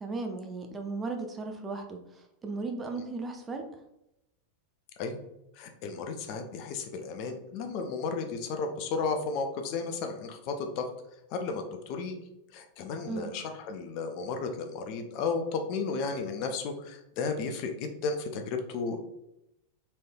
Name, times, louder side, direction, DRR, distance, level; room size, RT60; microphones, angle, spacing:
voice 1, 0.0-2.0 2.4-3.7 13.1-13.3, right 3 dB, 20° right, 4 dB, 0.5 m, -36 dB
voice 2, 5.5-10.9 11.3-12.2 12.5-19.0, left 4 dB, 45° left, 5 dB, 0.5 m, -33 dB
4.1 x 3.1 x 2.2 m, 0.86 s
figure-of-eight pair, 90°, 0 cm